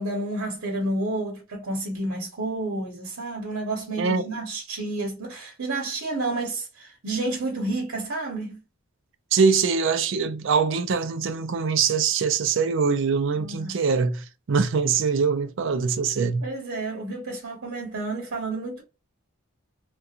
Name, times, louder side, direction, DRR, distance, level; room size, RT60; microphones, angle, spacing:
voice 1, 0.0-8.6 13.3-13.8 16.4-18.8, right 2 dB, 80° right, 0.9 m, -30 dB
voice 2, 9.3-16.5, right 5 dB, 60° right, 0.4 m, -23 dB
2.4 x 2.2 x 2.7 m
head